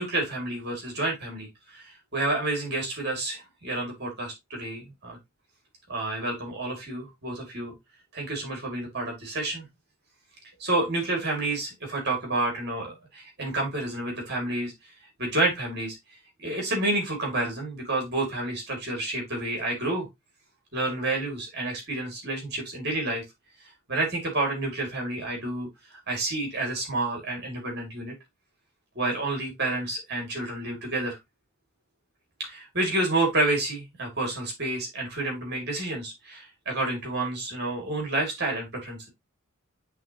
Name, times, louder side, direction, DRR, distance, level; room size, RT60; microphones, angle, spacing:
voice 1, 0.0-5.2 5.9-7.7 8.1-9.6 10.6-14.7 15.2-20.1 20.7-23.2 23.9-28.1 29.0-31.2 32.4-39.1, right 2 dB, 50° right, 0 dB, 2.3 m, -29 dB
9.8 x 3.4 x 2.9 m, 0.19 s
head